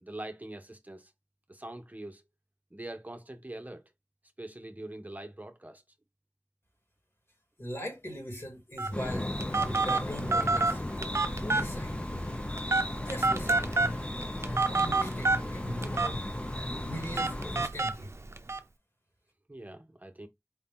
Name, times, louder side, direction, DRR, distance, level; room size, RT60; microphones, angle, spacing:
voice 1, 0.0-1.1 1.5-2.2 2.7-3.8 4.4-5.8 19.5-20.3, right 1 dB, 35° right, 0.7 m, -43 dB
voice 2, 7.6-9.3 9.6-10.8 11.4-12.0 13.0-13.8 14.7-16.3 16.7-18.1, equal, 55° left, 2.4 m, -40 dB
Telephone, 8.8-18.6, right 3 dB, 65° right, 0.5 m, -30 dB
sound 1, 8.9-17.7, left 1 dB, 25° left, 0.4 m, -35 dB
4.7 x 2.7 x 3.6 m
wide cardioid pair, 45°, 5 cm